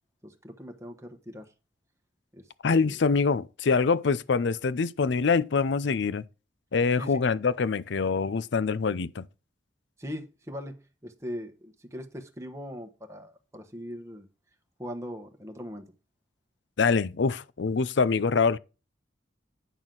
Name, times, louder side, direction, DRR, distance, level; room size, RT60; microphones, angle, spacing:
voice 1, 0.2-1.4 2.3-3.0 7.0-7.4 10.0-14.3 14.8-15.8, equal, 15° right, 1.0 m, -40 dB
voice 2, 2.6-6.2 6.7-9.2 16.8-18.6, left 4 dB, 65° left, 0.5 m, -25 dB
9.0 x 6.1 x 3.8 m
head